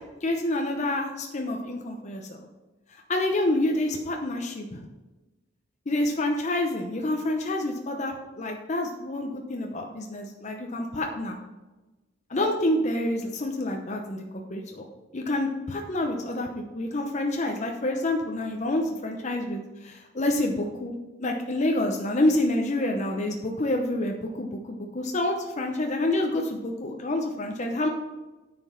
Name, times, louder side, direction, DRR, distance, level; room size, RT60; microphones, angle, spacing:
voice 1, 0.2-2.5 3.1-4.9 5.9-11.4 12.3-14.2 14.5-14.9 15.1-16.5 16.7-20.9 21.2-27.9, left 1 dB, 40° left, 2 dB, 0.8 m, -28 dB
9.3 x 5.3 x 5.7 m, 1.1 s
head